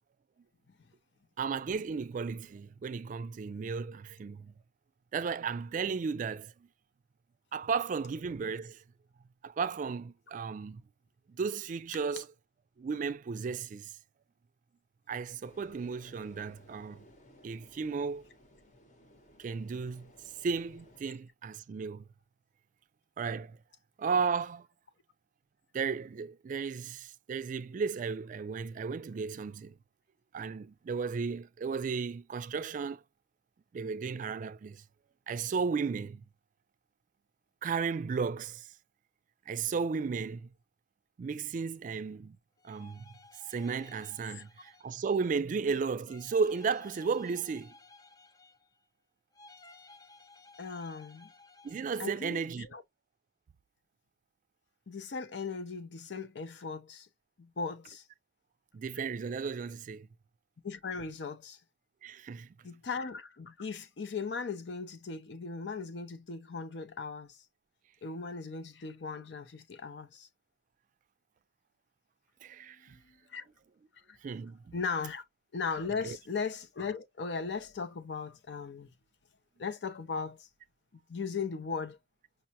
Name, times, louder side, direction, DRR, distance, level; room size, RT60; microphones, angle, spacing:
voice 1, 1.4-4.5 5.1-6.5 7.5-8.8 9.4-10.8 11.3-12.3 12.8-13.9 15.1-17.0 17.4-18.3 19.4-20.1 20.4-22.1 23.2-23.6 24.0-24.7 25.7-29.7 30.3-33.0 33.7-34.8 35.3-36.2 37.6-38.7 39.5-40.5 41.2-42.4 42.6-43.0 43.5-47.7 51.6-52.7 58.7-60.1 62.0-62.5 72.4-73.0 74.2-74.7 76.0-76.2, right 5 dB, 45° right, 0.3 m, -34 dB
sound 1, 15.4-21.0, left 1 dB, 45° left, 1.0 m, -59 dB
sound 2, 42.6-45.4 46.0-48.8 49.3-52.3, left 3 dB, 20° left, 0.4 m, -57 dB
voice 2, 50.6-51.3 52.0-52.8 54.9-57.1 57.4-58.0 60.6-61.6 62.6-67.4 68.0-70.3 72.9-73.5 74.1-74.2 74.7-75.2 75.5-78.9 79.6-80.5 81.1-82.0, left 5 dB, 75° left, 0.6 m, -38 dB
5.3 x 2.2 x 2.8 m
head